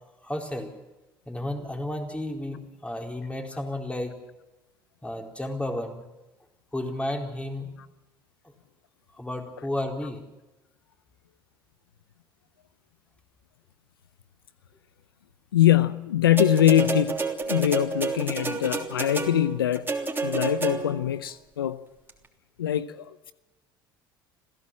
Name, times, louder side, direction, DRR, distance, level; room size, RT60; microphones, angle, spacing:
voice 1, 0.2-0.7 1.3-4.2 5.0-6.0 6.7-7.7 9.2-10.2, left 1 dB, 10° left, 2 dB, 4.4 m, -32 dB
voice 2, 15.5-19.9 20.2-21.8 22.6-23.3, left 12 dB, 85° left, 15 dB, 0.6 m, -23 dB
sound 1, 16.4-21.1 22.1-22.2, right 3 dB, 20° right, 3.2 m, -29 dB
27.0 x 16.0 x 7.5 m, 1.1 s
hypercardioid pair, 65°, 12 cm